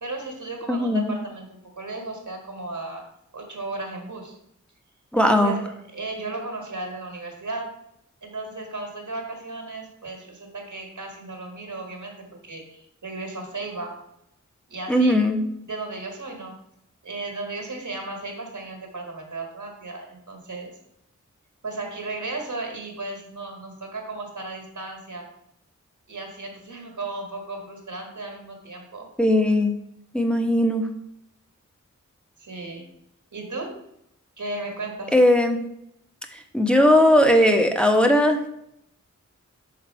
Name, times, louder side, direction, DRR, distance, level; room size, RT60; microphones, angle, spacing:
voice 1, 0.0-3.1 3.3-4.3 5.1-7.7 8.2-14.0 14.7-15.2 15.7-16.6 17.0-20.7 21.6-25.3 26.1-29.1 32.4-32.9 33.3-33.8 34.4-35.2, right 2 dB, 70° right, 2 dB, 1.5 m, -35 dB
voice 2, 0.7-1.1 5.1-5.5 14.9-15.4 29.2-29.7 30.1-30.9 35.1-35.6 36.5-38.4, left 1 dB, 5° left, 3 dB, 0.9 m, -18 dB
6.0 x 3.9 x 4.6 m, 0.78 s
cardioid pair, 45°, 31 cm